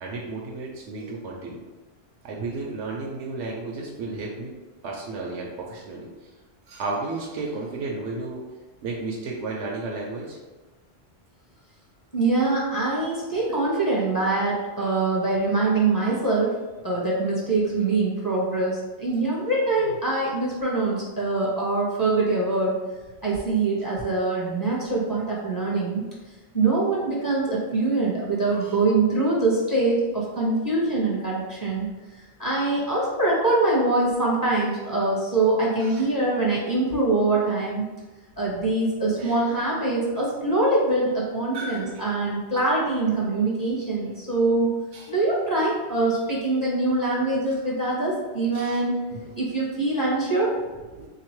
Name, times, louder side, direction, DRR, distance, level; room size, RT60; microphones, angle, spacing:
voice 1, 0.0-1.6 2.2-4.5 4.8-6.1 6.7-8.4 8.8-10.4 14.8-14.9 15.6-15.8 16.0-16.2 17.6-18.0 28.5-28.8 30.4-30.5 30.8-30.9 35.8-36.1 39.1-39.6 41.5-42.0 42.5-42.6 44.9-45.1 48.5-48.8 49.1-49.3 50.9-51.1, right 3 dB, 85° right, -2 dB, 0.9 m, -34 dB
voice 2, 12.1-16.6 16.8-22.8 23.2-26.0 26.5-31.9 32.4-37.8 38.4-44.7 45.1-49.0 49.4-50.5, right 2 dB, 20° left, -6 dB, 0.9 m, -24 dB
3.7 x 2.8 x 3.0 m, 1.2 s
omnidirectional pair, 1.1 m